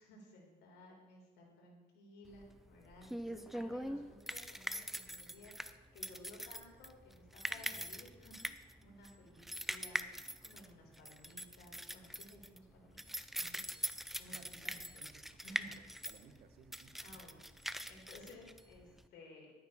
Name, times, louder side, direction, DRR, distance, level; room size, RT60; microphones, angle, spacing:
voice 1, 0.0-8.4 8.8-13.6 13.9-15.1 15.4-15.7 17.0-19.5, left 1 dB, 80° left, -1 dB, 4.1 m, -57 dB
sound 1, 2.3-19.1, equal, ahead, 0.5 m, -43 dB
voice 2, 14.3-15.4 15.6-17.2, right 6 dB, 70° right, 7 dB, 1.5 m, -62 dB
12.0 x 9.1 x 6.1 m, 1.3 s
cardioid pair, 110°, 17 cm